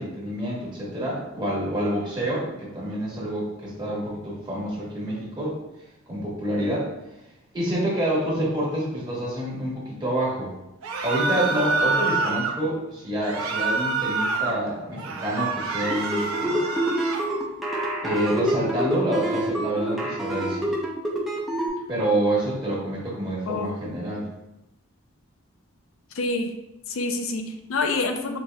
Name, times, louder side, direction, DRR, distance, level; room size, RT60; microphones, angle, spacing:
voice 1, 0.0-5.6 6.1-6.9 7.5-10.6 11.0-16.6 18.0-20.7 21.9-24.3, right 1 dB, 20° right, -6 dB, 1.2 m, -27 dB
sound 1, 10.8-12.5 13.2-14.6 15.0-17.3, right 3 dB, 80° right, 0.5 m, -26 dB
sound 2, 15.8-21.7, right 1 dB, ahead, 0.5 m, -27 dB
voice 2, 26.2-26.5 26.9-28.4, left 3 dB, 70° left, 5 dB, 0.5 m, -27 dB
5.1 x 2.8 x 2.2 m, 0.92 s
head